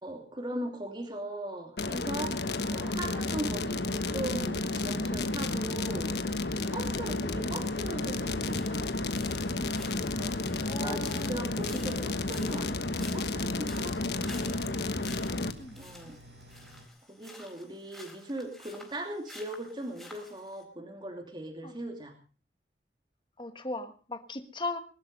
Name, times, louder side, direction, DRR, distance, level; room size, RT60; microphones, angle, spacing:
voice 1, 0.0-2.3 2.7-6.1 6.7-8.8 10.2-10.3 10.8-14.7 15.8-16.2 17.1-22.1, right 1 dB, 25° right, 3 dB, 2.7 m, -39 dB
sound 1, 1.8-15.5, left 2 dB, 70° left, 1.3 m, -32 dB
sound 2, 3.5-16.9, equal, 85° right, 4.0 m, -52 dB
sound 3, 6.9-20.6, left 2 dB, ahead, 4.1 m, -52 dB
voice 2, 10.6-11.4 15.6-15.8 21.6-21.7 23.4-24.8, left 2 dB, 30° left, 8 dB, 1.5 m, -37 dB
21.0 x 11.5 x 5.4 m, 0.39 s
head